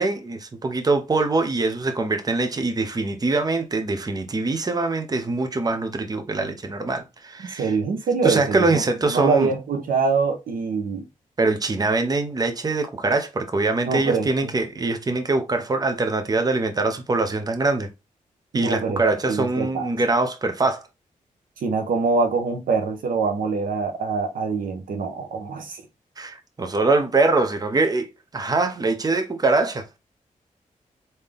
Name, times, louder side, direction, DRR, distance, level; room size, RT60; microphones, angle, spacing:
voice 1, 0.0-7.7 8.2-9.5 11.4-17.9 18.5-20.8 26.2-28.1 28.3-30.0, right 3 dB, 30° right, 0.7 m, -23 dB
voice 2, 7.6-11.0 13.9-14.5 18.5-19.0 19.3-19.9 21.6-25.8, right 4 dB, 85° right, 0.9 m, -24 dB
3.7 x 2.8 x 3.3 m
cardioid pair, 75°, 14 cm